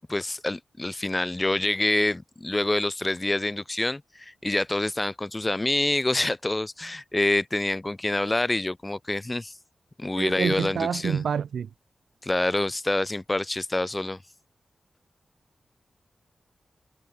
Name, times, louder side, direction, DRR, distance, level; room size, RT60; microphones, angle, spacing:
voice 1, 0.1-9.5 10.0-11.2 12.2-14.2, left 2 dB, 25° left, 2.5 m, -26 dB
voice 2, 10.2-11.7, right 7 dB, 90° right, 2.1 m, -27 dB
cardioid pair, 50°, 0 cm